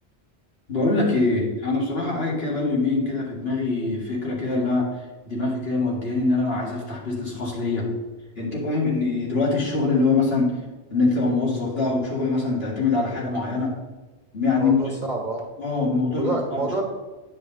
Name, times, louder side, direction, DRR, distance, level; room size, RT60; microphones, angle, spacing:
voice 1, 0.7-7.9 8.4-10.6 10.9-13.8 14.3-14.9 15.6-16.8, left 3 dB, 65° left, -4 dB, 2.1 m, -24 dB
voice 2, 14.6-15.4 16.2-16.8, right 2 dB, 40° right, 0 dB, 1.6 m, -28 dB
9.6 x 5.1 x 4.0 m, 1.2 s
omnidirectional pair, 1.1 m